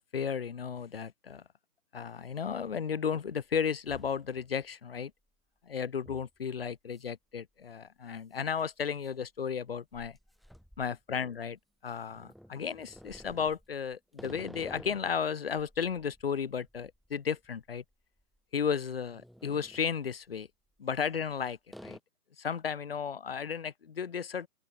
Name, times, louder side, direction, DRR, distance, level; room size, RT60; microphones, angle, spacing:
voice 1, 0.0-1.4 1.9-5.1 5.6-10.2 10.8-17.8 18.5-20.5 20.8-22.0 22.4-24.5, left 7 dB, 35° left, 5.1 m, -34 dB
sound 1, 3.8-4.6 5.0-5.1 6.1-6.3 6.9-7.1 7.4-7.5 8.4-11.5 12.1-15.2 15.6-17.9 18.2-18.4 18.9-19.9 20.8-21.3 21.7-22.0, equal, ahead, 3.5 m, -52 dB
open air
hypercardioid pair, 170°, 47 cm